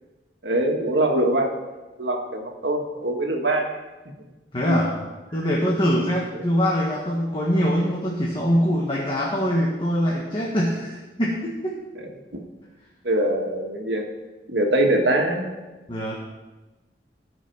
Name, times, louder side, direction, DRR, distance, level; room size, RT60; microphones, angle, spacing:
voice 1, 0.4-1.5 2.0-3.8 4.6-4.8 6.3-6.4 11.9-12.1 13.0-14.0 14.5-15.5, right 1 dB, 80° right, 2 dB, 1.7 m, -23 dB
voice 2, 4.5-4.9 5.3-11.8 15.9-16.2, equal, 30° left, -4 dB, 1.6 m, -23 dB
18.5 x 6.2 x 4.6 m, 1.2 s
head